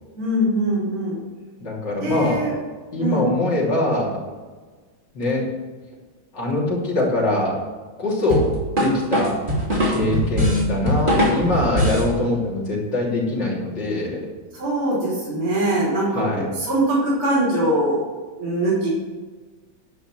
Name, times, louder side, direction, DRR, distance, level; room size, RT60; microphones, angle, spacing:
voice 1, 0.1-1.2 2.0-2.5 3.0-3.2 14.5-18.0 18.4-18.9, right 1 dB, 90° right, -7 dB, 4.3 m, -22 dB
voice 2, 1.6-2.4 2.9-4.2 5.1-5.5 6.3-7.6 8.0-8.5 8.8-9.4 9.9-14.2 16.1-16.5, left 2 dB, 55° left, -5 dB, 3.8 m, -23 dB
sound 1, 8.3-12.1, equal, 25° right, 2.8 m, -21 dB
11.0 x 5.8 x 7.6 m, 1.4 s
omnidirectional pair, 2.3 m